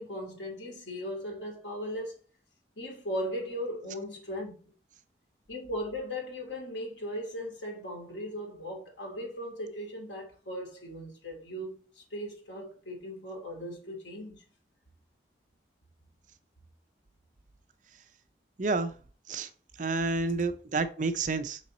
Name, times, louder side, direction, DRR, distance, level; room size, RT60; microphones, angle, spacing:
voice 1, 0.0-2.2 2.8-4.7 5.5-14.4, equal, 85° left, 2.5 m, -38 dB
voice 2, 18.6-18.9 19.3-19.5 19.8-21.6, right 3 dB, 45° right, 0.5 m, -29 dB
5.9 x 4.2 x 4.1 m
head